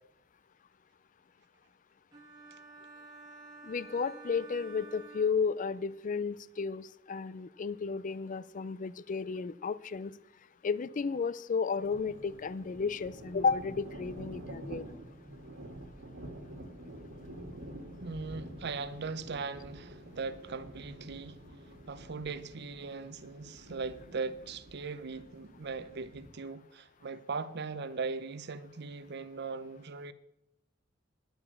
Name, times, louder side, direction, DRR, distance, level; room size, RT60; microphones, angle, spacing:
sound 1, 2.1-6.0, right 3 dB, 20° right, 1.6 m, -51 dB
voice 1, 3.6-10.1 10.6-14.8, left 5 dB, 40° left, 0.4 m, -33 dB
sound 2, 11.8-26.3, right 1 dB, 90° right, 1.8 m, -48 dB
voice 2, 18.0-21.4 21.9-30.1, right 4 dB, 60° right, 0.7 m, -39 dB
10.5 x 7.1 x 6.9 m
head